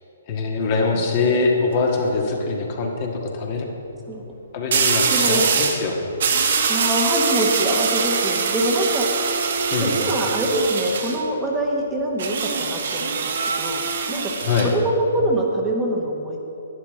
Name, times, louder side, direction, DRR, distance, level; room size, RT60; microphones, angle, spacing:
voice 1, 0.3-3.7 4.5-6.0 9.7-10.0 14.4-14.7, left 4 dB, 40° left, 0 dB, 1.6 m, -23 dB
sound 1, 1.6-1.9 4.7-5.8 6.2-11.2 12.2-14.7, right 5 dB, 60° right, 1.0 m, -23 dB
voice 2, 5.1-5.5 6.7-9.1 9.8-13.8 14.1-14.3 14.6-16.4, right 1 dB, 15° right, -1 dB, 1.2 m, -24 dB
11.5 x 10.0 x 3.7 m, 2.8 s
hypercardioid pair, 135°, 0 cm